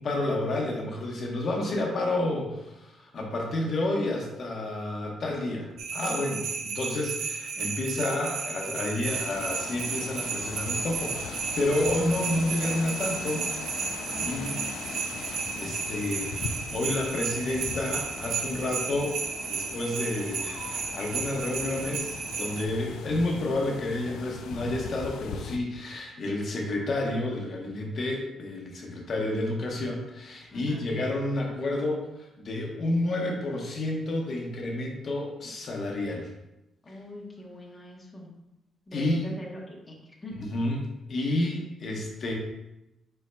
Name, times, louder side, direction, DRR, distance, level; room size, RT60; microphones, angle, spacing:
voice 1, 0.0-6.5 6.7-13.4 14.2-14.6 15.5-19.2 19.5-36.3 38.9-39.3 40.5-40.8 41.1-42.3, left 2 dB, 40° left, 0 dB, 0.9 m, -30 dB
sound 1, 5.8-22.7, right 5 dB, 70° right, 0.5 m, -33 dB
sound 2, 9.0-25.6, left 5 dB, 85° left, 0.3 m, -40 dB
voice 2, 14.1-14.8 30.5-30.9 36.8-38.3 38.9-40.5, left 1 dB, 15° left, -2 dB, 1.0 m, -43 dB
5.1 x 4.4 x 2.2 m, 0.92 s
cardioid pair, 160°, 0 cm